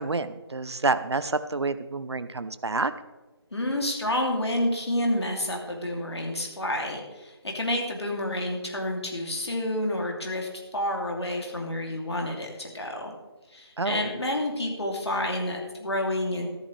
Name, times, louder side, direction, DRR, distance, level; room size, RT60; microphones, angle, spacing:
voice 1, 0.0-2.9 13.8-14.1, right 3 dB, 75° right, 13 dB, 0.7 m, -28 dB
voice 2, 3.5-13.1 13.5-16.5, left 1 dB, 70° left, 1 dB, 2.9 m, -29 dB
13.5 x 12.0 x 3.4 m, 1.1 s
figure-of-eight pair, 160°, 14 cm